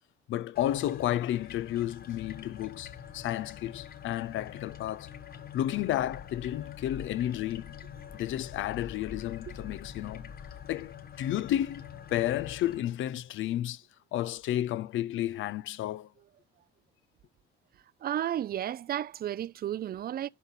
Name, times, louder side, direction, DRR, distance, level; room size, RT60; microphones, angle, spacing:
voice 1, 0.3-5.1 5.5-7.7 8.1-10.3 10.7-11.8 12.1-13.8 14.1-16.1, left 13 dB, 80° left, 0.6 m, -32 dB
sound 1, 0.6-12.8, left 8 dB, 50° left, 1.0 m, -45 dB
voice 2, 18.0-20.3, right 11 dB, 50° right, 0.5 m, -33 dB
11.0 x 4.1 x 5.7 m
cardioid pair, 90°, 20 cm